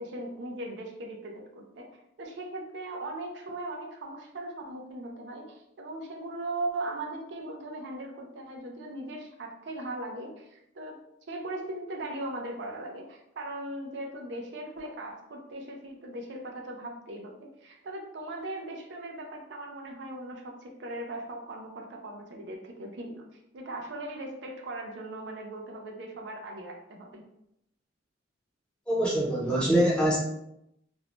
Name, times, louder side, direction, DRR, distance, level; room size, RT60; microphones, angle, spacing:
voice 1, 0.0-1.9 2.2-11.0 11.3-23.2 23.5-27.2, right 2 dB, 65° right, 1 dB, 0.4 m, -39 dB
voice 2, 28.9-30.2, right 1 dB, 5° left, -5 dB, 0.6 m, -24 dB
2.5 x 2.1 x 2.9 m, 0.81 s
head